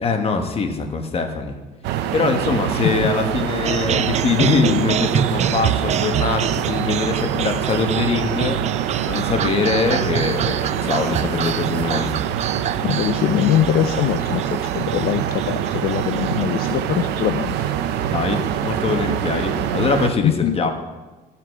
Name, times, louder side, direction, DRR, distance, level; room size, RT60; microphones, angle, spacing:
voice 1, 0.0-1.5 2.1-8.6 9.0-12.1 18.1-20.7, left 4 dB, 35° left, 5 dB, 1.3 m, -22 dB
sound 1, 1.8-20.1, right 10 dB, 90° right, 0.6 m, -24 dB
sound 2, 3.6-16.4, right 10 dB, 40° right, 0.4 m, -27 dB
voice 2, 12.8-17.7 20.2-20.6, left 11 dB, 65° left, 9 dB, 0.5 m, -22 dB
13.5 x 5.8 x 4.7 m, 1.2 s
cardioid pair, 110°, 17 cm